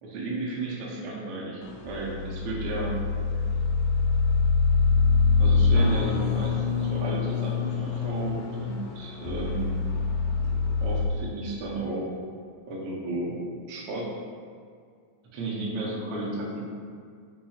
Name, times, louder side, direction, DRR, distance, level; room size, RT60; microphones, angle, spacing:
voice 1, 0.0-3.0 5.4-10.4 10.8-12.0 12.7-14.1 15.3-16.7, right 2 dB, 80° right, -4 dB, 1.3 m, -33 dB
sound 1, 1.6-11.1, left 4 dB, 90° left, 2.1 m, -25 dB
5.3 x 2.3 x 4.2 m, 2.2 s
omnidirectional pair, 3.6 m